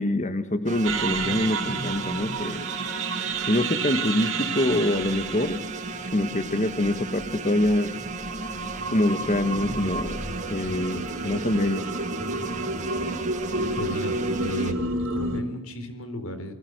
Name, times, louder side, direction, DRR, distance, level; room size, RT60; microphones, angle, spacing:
voice 1, 0.0-2.7 3.5-5.6 6.1-7.9 8.9-10.2 10.5-11.9, left 1 dB, 35° left, 9 dB, 1.3 m, -25 dB
sound 1, 0.7-14.7, right 3 dB, 35° right, 2.1 m, -35 dB
sound 2, 0.8-15.4, right 3 dB, 65° right, 3.6 m, -31 dB
voice 2, 13.8-16.5, equal, 85° left, 10 dB, 3.9 m, -34 dB
29.0 x 21.5 x 6.6 m, 1.0 s
head